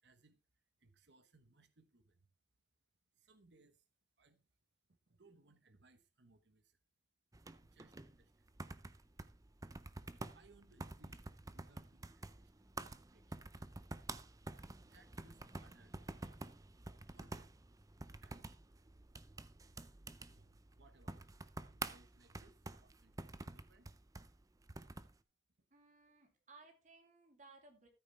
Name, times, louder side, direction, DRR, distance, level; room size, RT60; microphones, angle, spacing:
voice 1, 0.0-2.3 3.1-3.9 4.2-4.6 5.1-6.8 7.6-8.6 10.3-13.3 14.8-16.5 17.1-17.6 18.2-18.6 20.2-23.9 25.6-25.7, right 3 dB, 70° right, 1.1 m, -69 dB
sound 1, 7.3-25.2, right 2 dB, 20° right, 0.5 m, -50 dB
voice 2, 25.7-27.9, right 3 dB, 45° right, 2.9 m, -62 dB
13.5 x 8.6 x 3.4 m
head